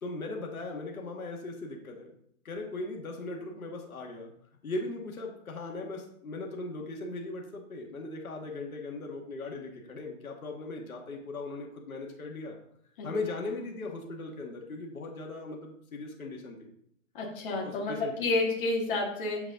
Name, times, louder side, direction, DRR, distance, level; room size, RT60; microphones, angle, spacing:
voice 1, 0.0-2.1 2.4-4.3 4.6-12.6 13.0-16.7 17.6-18.3, left 2 dB, 90° left, 1 dB, 1.9 m, -38 dB
voice 2, 17.1-17.9 18.2-19.4, left 2 dB, 40° left, -2 dB, 2.0 m, -29 dB
7.7 x 5.0 x 3.8 m, 0.69 s
hypercardioid pair, 155°, 41 cm